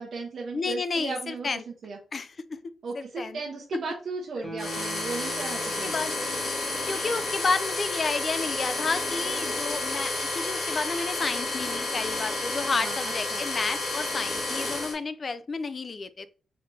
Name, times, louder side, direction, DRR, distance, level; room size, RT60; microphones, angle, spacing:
voice 1, 0.0-1.5 1.8-2.0 2.8-5.9 12.7-13.0 13.3-13.4, right 4 dB, 60° right, 1.0 m, -35 dB
voice 2, 0.5-1.6 2.1-2.6 2.9-3.4 5.8-6.1 6.9-16.3, left 4 dB, 35° left, 0.4 m, -31 dB
Guitar, 4.4-7.7 8.0-8.1, right 1 dB, 5° left, 1.1 m, -43 dB
sound 1, 4.6-14.9, left 2 dB, 60° left, 2.1 m, -31 dB
4.1 x 3.3 x 2.7 m
wide cardioid pair, 130°, 0 cm